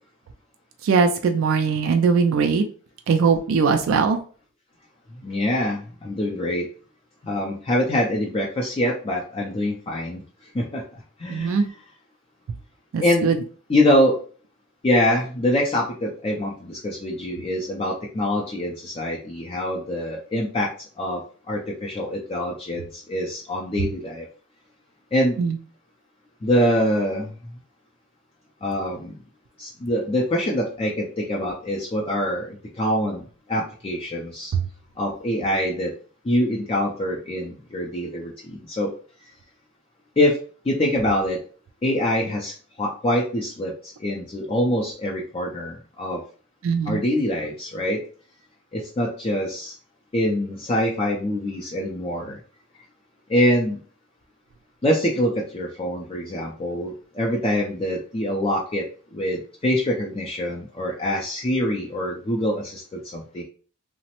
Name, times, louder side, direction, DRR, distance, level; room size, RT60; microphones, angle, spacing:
voice 1, 0.8-2.7 3.1-4.2 11.3-11.7 12.9-13.3 25.4-25.6 46.6-47.0, right 5 dB, 75° right, 5 dB, 0.3 m, -20 dB
voice 2, 5.2-6.7 7.2-10.2 10.5-10.8 11.2-11.7 13.0-13.3 13.7-14.2 14.8-20.7 21.0-21.2 21.5-24.2 25.1-25.4 26.4-27.4 28.6-29.2 29.6-33.2 33.5-34.5 35.0-35.9 36.2-38.9 40.2-40.4 40.7-41.4 41.8-46.2 46.9-48.0 48.7-49.7 50.1-52.4 53.3-53.8 54.8-58.8 59.1-63.4, left 1 dB, 30° left, -1 dB, 0.4 m, -24 dB
3.0 x 2.0 x 2.8 m, 0.41 s
head